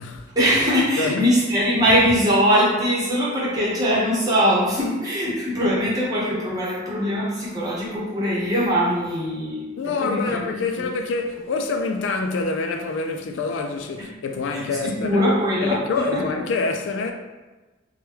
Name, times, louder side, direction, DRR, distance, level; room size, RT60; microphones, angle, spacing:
voice 1, 0.3-9.7 10.0-10.4 10.8-10.9 14.0-14.1 14.5-15.8 16.1-16.2, equal, 20° right, 0.9 m, -21 dB
voice 2, 1.0-1.3 9.8-15.3 15.6-17.1, left 3 dB, 70° left, 0.3 m, -26 dB
3.1 x 2.2 x 3.2 m
head